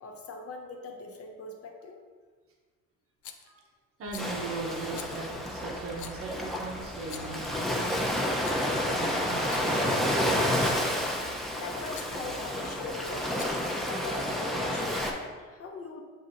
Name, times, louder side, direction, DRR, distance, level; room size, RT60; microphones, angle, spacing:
voice 1, 0.0-2.0 11.5-13.6 13.8-16.0, left 3 dB, 50° left, 2 dB, 0.8 m, -41 dB
Rattle, 3.2-3.5 4.0-4.3 4.9-5.1 5.9-6.2 7.0-7.4 8.2-8.9 9.3-9.7 10.5-10.9 11.9-12.2 13.2-13.7, left 8 dB, 75° left, 0.5 m, -45 dB
voice 2, 4.0-8.0 8.6-10.5, right 3 dB, 50° right, -1 dB, 0.9 m, -38 dB
Ocean, 4.2-15.1, equal, ahead, 0.6 m, -30 dB
7.5 x 2.7 x 2.6 m, 1.5 s
cardioid pair, 90°, 30 cm